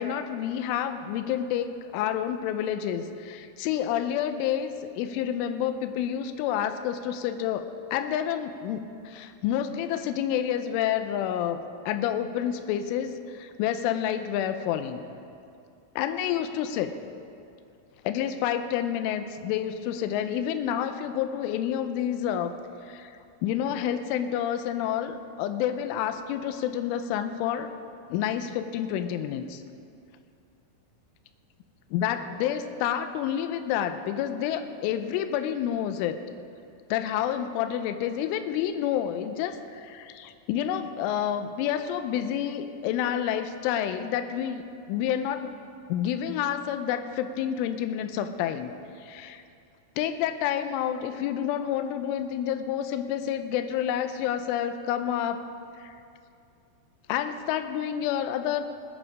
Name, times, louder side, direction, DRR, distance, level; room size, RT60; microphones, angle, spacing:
voice 1, 0.0-15.0 16.0-16.9 18.0-22.5 22.9-27.7 28.1-29.6 31.9-36.2 36.9-44.6 44.9-45.6 45.9-49.4 50.0-55.4 55.8-56.0 57.1-58.7, left 10 dB, 85° left, 9 dB, 3.0 m, -29 dB
20.0 x 10.0 x 4.8 m, 2.5 s
omnidirectional pair, 5.9 m